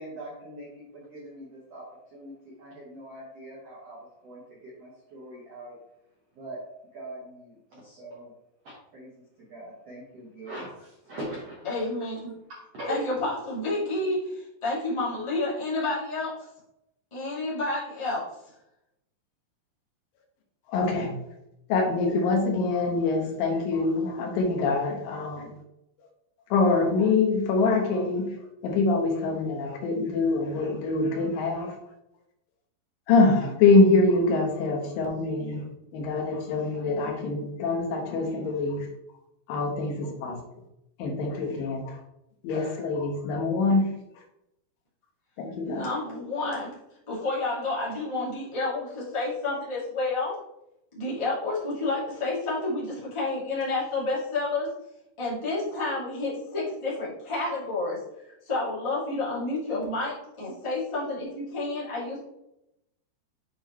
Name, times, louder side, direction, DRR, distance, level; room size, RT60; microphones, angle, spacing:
voice 1, 0.0-5.8 6.3-6.6 6.9-8.3 8.6-9.1 9.4-11.9 12.5-13.0, right 1 dB, 80° right, 1.4 m, -42 dB
voice 2, 11.6-12.3 12.9-16.4 17.1-18.3 45.6-46.7 47.1-50.4 50.9-54.7 55.2-62.2, left 2 dB, 25° left, 0.5 m, -30 dB
voice 3, 20.7-21.1 21.7-25.5 26.5-28.3 28.6-31.7 33.1-35.6 35.9-38.9 39.5-40.4 41.0-42.0 42.4-43.9 45.4-45.9, left 3 dB, 70° left, 2.4 m, -24 dB
8.4 x 4.4 x 3.1 m
omnidirectional pair, 5.3 m